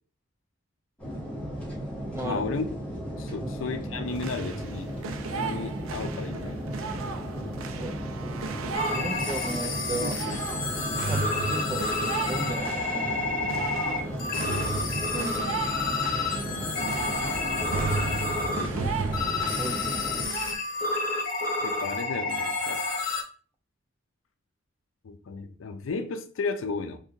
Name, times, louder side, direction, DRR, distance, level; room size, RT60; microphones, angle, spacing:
sound 1, 1.0-20.3, equal, 5° left, 1.1 m, -35 dB
voice 1, 2.2-2.6 3.2-6.5 9.0-9.1 9.6-10.4 14.3-14.8 17.5-17.8 18.4-19.0 21.6-22.8 25.0-27.0, left 4 dB, 75° left, 8 dB, 0.4 m, -34 dB
sound 2, 4.1-20.6, right 5 dB, 90° right, 0.4 m, -35 dB
voice 2, 7.8-8.1 8.9-10.2 10.8-13.1 15.1-15.5 19.6-20.3, right 2 dB, 15° right, 3 dB, 0.5 m, -35 dB
sound 3, 8.7-23.2, left 3 dB, 45° left, 1.0 m, -30 dB
2.7 x 2.7 x 3.6 m, 0.43 s
head